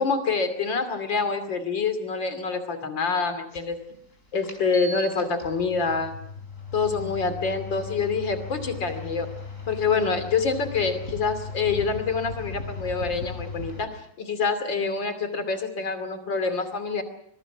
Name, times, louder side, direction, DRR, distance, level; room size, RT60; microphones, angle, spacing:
voice 1, 0.0-3.8 4.3-6.1 6.7-9.3 9.7-13.9 14.2-17.0, left 4 dB, 80° left, 9 dB, 3.5 m, -26 dB
sound 1, 3.5-3.6 4.4-13.8, left 3 dB, 40° left, 5.2 m, -37 dB
25.0 x 22.0 x 6.1 m, 0.70 s
omnidirectional pair, 2.0 m